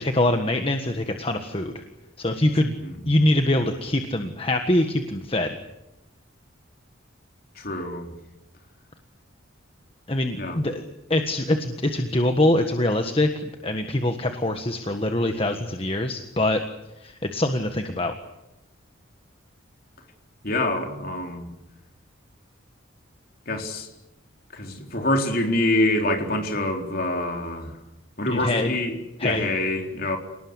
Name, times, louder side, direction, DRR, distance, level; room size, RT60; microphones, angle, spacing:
voice 1, 0.0-1.7 2.2-2.8 3.1-5.5 10.1-10.8 11.1-16.6 17.0-18.1 28.3-28.7 29.2-29.5, left 1 dB, 25° left, 6 dB, 1.5 m, -24 dB
voice 2, 7.6-8.1 10.4-10.6 20.4-21.5 23.5-23.9 24.5-27.7 28.2-28.9 29.2-30.2, left 1 dB, 45° left, 3 dB, 4.2 m, -25 dB
28.5 x 19.5 x 9.7 m, 0.92 s
head